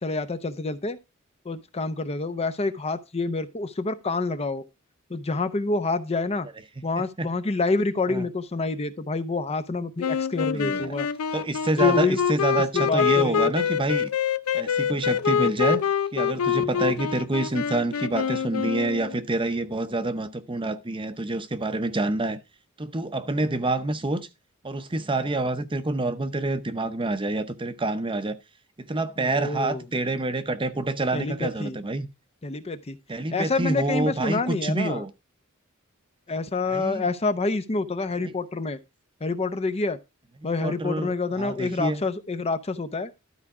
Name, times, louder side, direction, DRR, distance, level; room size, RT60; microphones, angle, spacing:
voice 1, 0.0-1.0 1.4-4.6 5.1-6.5 6.8-11.1 11.8-12.2 12.7-13.5 29.2-29.8 31.1-31.8 32.4-35.0 36.3-38.8 39.2-40.0 40.4-43.1, left 3 dB, 30° left, 0.7 m, -27 dB
voice 2, 6.8-7.3 8.1-8.3 10.5-11.0 11.3-14.1 14.5-15.9 16.1-22.4 22.8-24.3 24.6-28.4 28.8-32.1 33.1-35.1 36.7-37.1 38.2-38.3 40.4-42.0, right 2 dB, 25° right, 0.7 m, -27 dB
sound 1, 10.0-19.2, left 7 dB, 80° left, 0.5 m, -25 dB
12.5 x 4.8 x 4.8 m
head